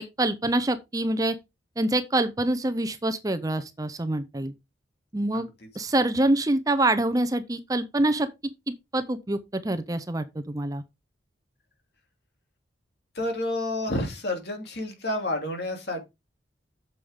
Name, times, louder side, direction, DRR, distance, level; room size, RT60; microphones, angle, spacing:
voice 1, 0.0-1.3 1.8-4.5 5.1-5.5 5.8-8.3 8.7-10.8, right 1 dB, 20° right, 0.6 m, -26 dB
voice 2, 13.1-16.1, left 1 dB, 60° left, 2.7 m, -29 dB
8.4 x 7.1 x 3.6 m
head